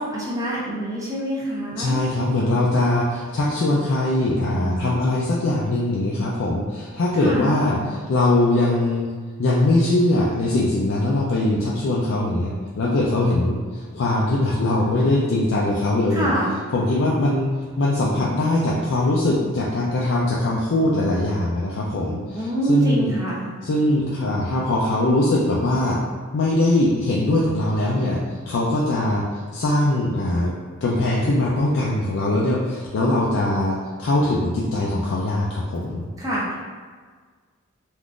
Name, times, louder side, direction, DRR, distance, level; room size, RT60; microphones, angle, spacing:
voice 1, 0.0-2.0 7.2-7.8 16.1-16.6 22.3-23.5 36.2-36.6, right 1 dB, 15° right, -6 dB, 0.5 m, -25 dB
voice 2, 1.8-9.1 9.4-16.3 16.7-17.5 17.8-23.1 23.6-26.0 26.3-28.2 28.5-30.5 30.8-36.0, left 1 dB, 60° left, -5 dB, 0.4 m, -21 dB
3.5 x 2.4 x 2.4 m, 1.5 s
head